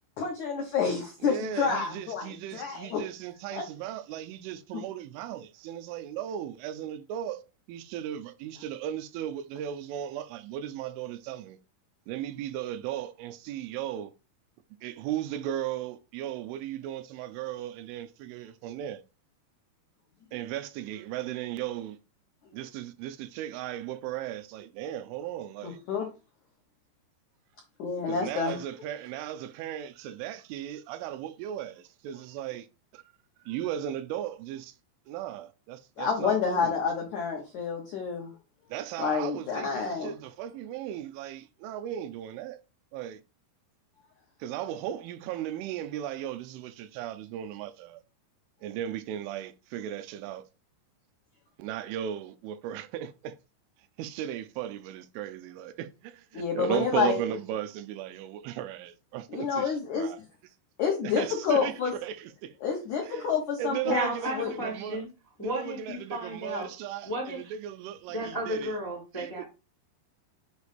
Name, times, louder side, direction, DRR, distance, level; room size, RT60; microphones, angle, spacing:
voice 1, 0.2-3.0 3.5-3.7 4.7-4.8 25.6-26.1 27.8-28.6 36.0-38.3 39.0-40.2 56.3-57.2 59.3-60.1 60.8-61.9 62.6-64.1 64.4-64.5, left 6 dB, 85° left, 1.6 m, -29 dB
voice 2, 1.2-7.4 7.7-11.6 12.1-14.1 14.8-19.0 20.3-22.0 22.5-25.8 28.1-32.6 33.5-34.7 35.1-36.7 38.7-42.6 42.9-43.2 44.4-48.0 48.6-50.4 51.6-53.3 54.0-55.9 56.3-59.7 60.0-60.2 61.2-61.7 62.0-62.1 63.1-63.2 63.6-65.0 65.4-67.1 67.3-68.6 69.2-69.3, right 11 dB, 85° right, 3.2 m, -36 dB
voice 3, 63.8-65.1 65.4-66.7 67.0-67.5 68.1-69.4, right 1 dB, 15° left, 0.6 m, -33 dB
8.0 x 2.7 x 5.2 m
omnidirectional pair, 5.4 m